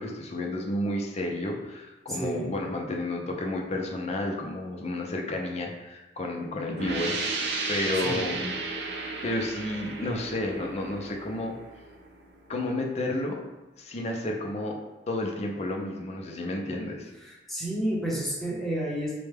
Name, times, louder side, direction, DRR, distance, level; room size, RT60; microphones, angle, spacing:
voice 1, 0.0-7.2 7.7-8.6 9.2-11.5 12.5-13.4 13.8-14.8 15.1-17.1, left 1 dB, 35° left, 1 dB, 0.5 m, -31 dB
voice 2, 2.1-2.5 8.0-8.2 17.2-19.2, right 1 dB, ahead, -6 dB, 0.9 m, -30 dB
sound 1, 6.8-12.2, right 3 dB, 65° right, 0.5 m, -34 dB
4.2 x 2.2 x 3.3 m, 1.1 s
head